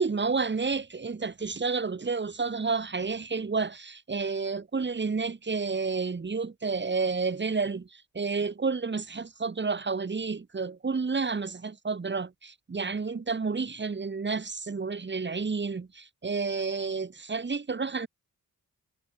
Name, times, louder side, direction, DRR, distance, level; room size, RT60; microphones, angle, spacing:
voice 1, 0.0-18.1, right 4 dB, 30° right, 4.2 m, -30 dB
cardioid pair, 115°, 34 cm